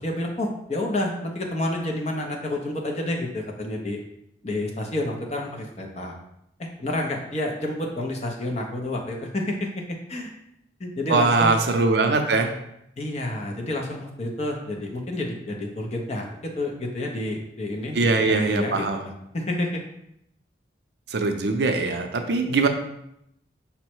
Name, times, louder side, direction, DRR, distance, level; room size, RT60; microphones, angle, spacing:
voice 1, 0.0-4.0 4.4-6.1 6.6-10.3 10.8-11.5 13.0-18.9 19.3-19.8, left 1 dB, 35° left, 1 dB, 0.6 m, -29 dB
voice 2, 11.1-12.5 17.9-19.1 21.1-22.7, right 3 dB, 65° right, 5 dB, 0.5 m, -22 dB
5.4 x 2.1 x 4.4 m, 0.78 s
head